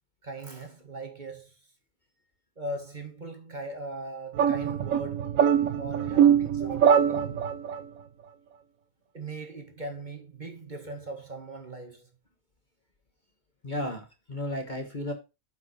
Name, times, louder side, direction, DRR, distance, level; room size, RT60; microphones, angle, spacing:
voice 1, 0.2-1.5 2.6-5.4 5.8-7.6 9.1-12.1, right 2 dB, 30° right, 1.9 m, -39 dB
sound 1, 4.3-7.8, right 8 dB, 70° right, 1.1 m, -23 dB
voice 2, 13.6-15.1, left 1 dB, 35° left, 1.3 m, -34 dB
9.3 x 5.9 x 4.2 m
omnidirectional pair, 1.6 m